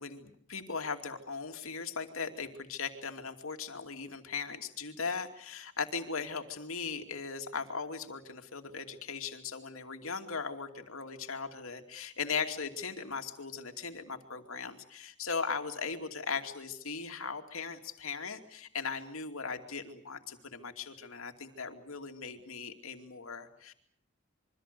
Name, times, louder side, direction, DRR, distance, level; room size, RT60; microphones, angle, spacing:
voice 1, 0.0-23.7, left 5 dB, 80° left, 6 dB, 2.6 m, -38 dB
27.0 x 24.0 x 6.9 m, 0.65 s
head